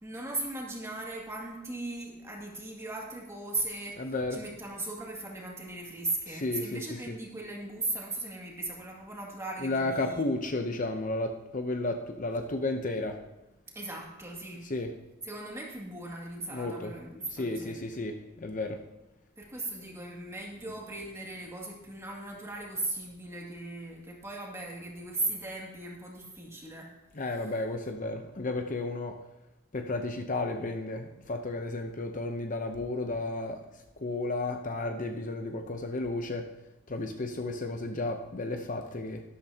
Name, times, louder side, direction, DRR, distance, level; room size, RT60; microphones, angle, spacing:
voice 1, 0.0-10.2 13.7-14.6 15.2-18.0 19.4-26.9, right 2 dB, 15° right, -2 dB, 2.2 m, -38 dB
voice 2, 4.0-4.4 6.3-7.2 9.6-13.2 14.6-14.9 16.4-16.9 17.3-18.8 27.1-29.2 29.7-33.6 34.0-36.5 36.9-39.2, left 2 dB, 40° left, 5 dB, 0.7 m, -33 dB
12.5 x 12.0 x 2.8 m, 0.98 s
head